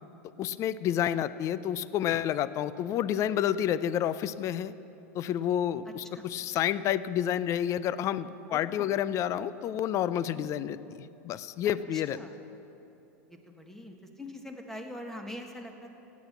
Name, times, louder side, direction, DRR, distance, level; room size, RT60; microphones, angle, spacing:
voice 1, 0.4-4.7 5.1-12.2, left 10 dB, 40° left, 16 dB, 0.5 m, -29 dB
voice 2, 8.5-8.9 11.6-12.4 13.3-15.9, left 1 dB, 5° left, 3 dB, 1.7 m, -43 dB
16.5 x 9.4 x 6.9 m, 2.9 s
hypercardioid pair, 105°, 8 cm